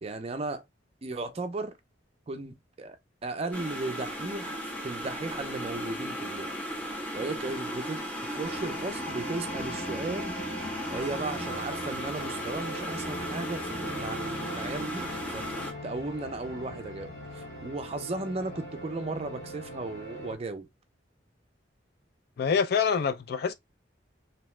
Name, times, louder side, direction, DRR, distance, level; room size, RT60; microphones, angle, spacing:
voice 1, 0.0-0.6 1.0-1.7 2.3-3.0 3.2-6.5 7.1-10.4 10.9-15.4 15.8-20.7, right 2 dB, 35° right, 0.4 m, -35 dB
sound 1, 3.5-15.7, equal, 10° left, 0.6 m, -36 dB
sound 2, 8.4-20.4, equal, 80° left, 1.7 m, -41 dB
voice 2, 22.4-23.5, left 6 dB, 55° left, 0.3 m, -26 dB
2.8 x 2.1 x 3.1 m
head